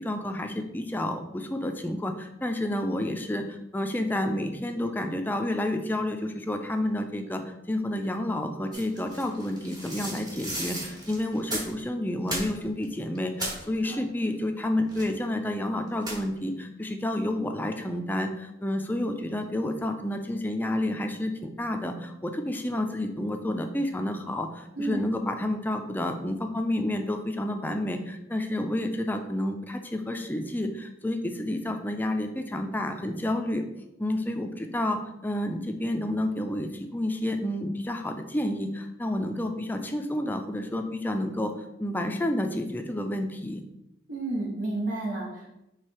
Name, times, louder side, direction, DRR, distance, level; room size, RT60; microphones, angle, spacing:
voice 1, 0.0-7.4 7.7-33.6 34.0-41.5 41.8-43.6, left 1 dB, 10° left, 5 dB, 0.3 m, -30 dB
sound 1, 8.7-11.8 12.2-12.8 13.1-13.7 14.9-15.3 16.0-16.4, right 1 dB, 20° right, 0.9 m, -35 dB
voice 2, 44.1-45.5, right 2 dB, 80° right, -3 dB, 1.0 m, -31 dB
3.2 x 3.1 x 4.6 m, 0.87 s
head